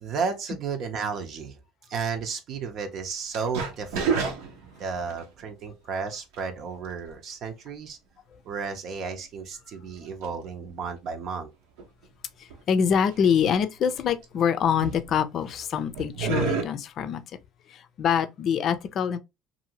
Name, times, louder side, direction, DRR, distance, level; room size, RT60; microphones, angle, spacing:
voice 1, 0.0-1.6 1.9-4.2 4.8-8.0 8.4-11.5, right 5 dB, 55° right, 0.6 m, -33 dB
sound 1, 3.3-5.2 6.3-6.6 7.1-7.2 9.2-9.3 10.2-10.3 10.7-10.9 11.8-11.9 12.5-12.6 12.9-13.4 14.0-14.4 14.8-15.6 15.9-16.6, right 5 dB, 90° right, 0.8 m, -29 dB
voice 2, 12.4-17.2 17.7-19.2, left 7 dB, 50° left, 0.5 m, -25 dB
2.8 x 2.5 x 2.8 m
supercardioid pair, 105°, 0 cm